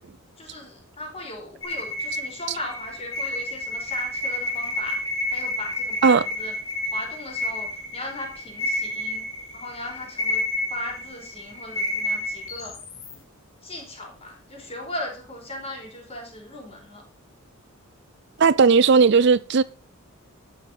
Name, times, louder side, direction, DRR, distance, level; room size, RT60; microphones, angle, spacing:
voice 1, 0.4-6.5 6.9-9.3 9.5-10.4 10.7-12.8 13.6-17.0, left 1 dB, 30° left, 4.5 m, -37 dB
sound 1, 1.6-13.1, left 1 dB, 70° left, 3.0 m, -30 dB
voice 2, 18.4-19.6, right 5 dB, 55° right, 0.5 m, -16 dB
12.5 x 7.8 x 5.3 m
head